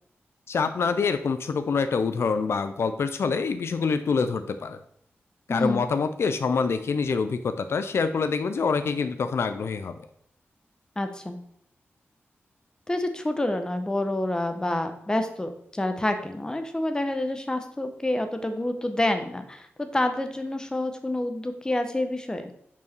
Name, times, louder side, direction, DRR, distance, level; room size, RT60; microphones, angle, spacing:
voice 1, 0.5-4.8 5.5-9.9, left 5 dB, 70° left, 10 dB, 0.4 m, -26 dB
voice 2, 5.5-5.9 11.0-11.4 12.9-22.5, left 1 dB, 15° left, 7 dB, 0.9 m, -28 dB
5.7 x 4.6 x 6.0 m, 0.71 s
wide cardioid pair, 95°, 4 cm